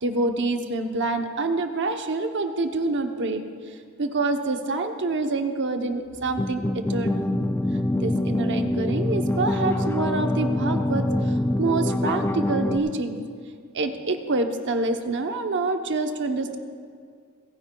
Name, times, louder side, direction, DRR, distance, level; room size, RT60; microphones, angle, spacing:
voice 1, 0.0-3.4 4.0-7.4 7.7-13.2 13.7-16.6, right 3 dB, 55° right, 6 dB, 0.8 m, -27 dB
sound 1, 6.2-12.8, left 1 dB, 10° left, 0.4 m, -25 dB
29.0 x 9.9 x 2.3 m, 2.1 s
head